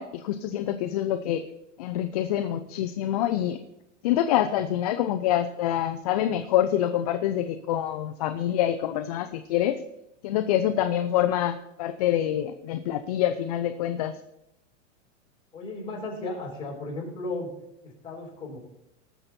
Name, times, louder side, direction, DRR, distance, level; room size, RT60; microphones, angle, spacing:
voice 1, 0.0-1.4 1.8-3.6 4.0-9.8 10.2-14.1, left 11 dB, 35° left, 8 dB, 0.4 m, -26 dB
voice 2, 15.5-17.5 17.8-18.6, left 2 dB, 15° left, -5 dB, 4.1 m, -35 dB
18.5 x 6.8 x 4.3 m, 0.84 s
supercardioid pair, 165°, 37 cm